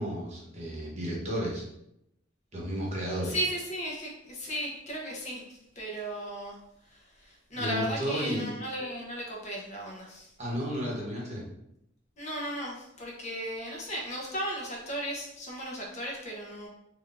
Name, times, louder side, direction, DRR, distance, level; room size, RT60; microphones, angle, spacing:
voice 1, 0.0-1.6 2.5-3.4 7.5-8.5 10.4-11.4, equal, 35° right, -3 dB, 1.0 m, -33 dB
voice 2, 3.2-6.6 6.9-10.3 12.2-16.7, equal, 35° left, -2 dB, 0.8 m, -36 dB
3.9 x 3.1 x 2.5 m, 0.81 s
head